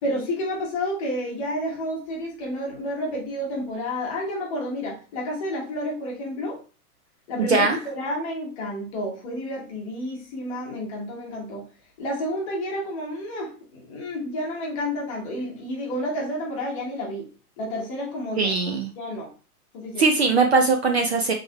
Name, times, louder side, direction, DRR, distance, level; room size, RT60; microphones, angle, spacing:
voice 1, 0.0-6.6 7.3-11.6 12.0-17.3 17.6-18.5 19.0-19.3 19.7-20.0, equal, 20° left, -1 dB, 0.9 m, -30 dB
voice 2, 18.4-18.9 20.0-21.3, right 4 dB, 45° right, 4 dB, 0.4 m, -20 dB
6.0 x 3.3 x 2.2 m, 0.35 s
hypercardioid pair, 170°, 46 cm